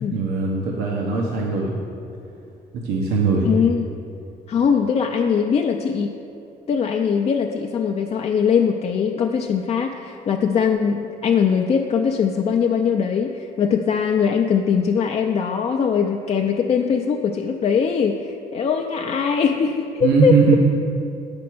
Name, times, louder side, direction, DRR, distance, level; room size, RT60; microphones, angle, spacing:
voice 1, 0.1-1.8 2.7-3.5 20.0-20.6, right 5 dB, 85° right, -2 dB, 1.0 m, -20 dB
voice 2, 3.4-3.9 4.5-6.1 6.7-20.3, left 6 dB, 40° left, 2 dB, 0.4 m, -21 dB
8.3 x 5.2 x 6.1 m, 2.7 s
cardioid pair, 110°, 17 cm